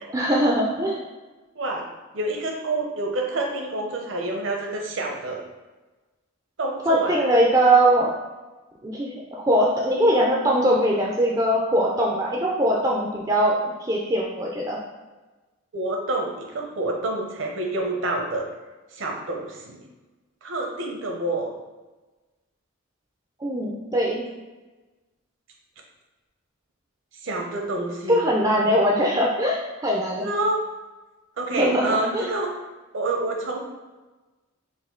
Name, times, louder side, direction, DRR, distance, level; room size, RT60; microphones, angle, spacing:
voice 1, 0.1-1.0 6.9-8.1 8.8-14.8 23.4-24.2 28.1-30.3 31.5-32.3, right 1 dB, 15° right, -3 dB, 0.3 m, -21 dB
voice 2, 1.5-1.9 2.1-5.4 6.6-7.2 15.7-18.5 18.9-19.8 20.4-21.5 27.2-28.2 30.2-30.6 31.4-32.5 32.9-33.6, right 2 dB, 65° right, 1 dB, 0.7 m, -27 dB
4.2 x 2.6 x 3.7 m, 1.2 s
head